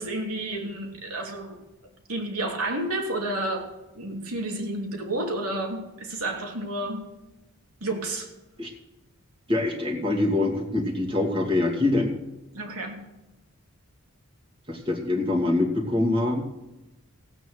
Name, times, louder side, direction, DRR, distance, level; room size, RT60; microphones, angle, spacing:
voice 1, 0.0-1.6 2.1-3.7 3.9-7.1 7.8-8.3 12.5-13.0, right 1 dB, 85° right, 1 dB, 3.0 m, -30 dB
voice 2, 9.5-12.1 14.7-16.4, left 2 dB, 25° right, 1 dB, 2.4 m, -24 dB
16.0 x 9.2 x 6.4 m, 0.98 s
head